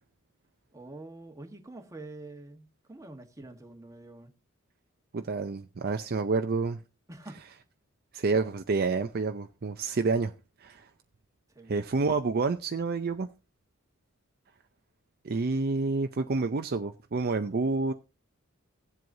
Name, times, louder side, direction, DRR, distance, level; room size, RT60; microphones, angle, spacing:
voice 1, 0.7-4.3 7.1-7.4 11.5-11.7, right 2 dB, 15° right, 1.3 m, -46 dB
voice 2, 5.1-6.8 8.1-10.3 10.6-10.8 11.7-13.3 15.2-17.9, right 3 dB, 45° right, 0.5 m, -28 dB
17.5 x 7.7 x 2.7 m
head